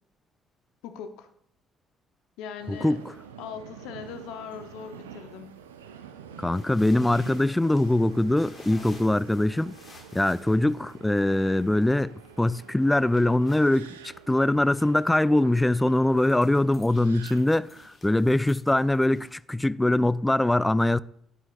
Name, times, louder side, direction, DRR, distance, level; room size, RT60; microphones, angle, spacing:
voice 1, 0.8-1.3 2.4-3.0 3.4-5.6, left 7 dB, 65° left, 0.7 m, -40 dB
Subway metro underground, 2.6-17.9, right 7 dB, 80° right, 0.5 m, -47 dB
voice 2, 2.7-3.0 6.4-9.8 10.1-21.0, left 1 dB, 10° left, 0.3 m, -23 dB
sound 1, 6.5-19.4, left 3 dB, 35° left, 1.7 m, -54 dB
11.0 x 9.5 x 2.4 m
figure-of-eight pair, 45°, 0 cm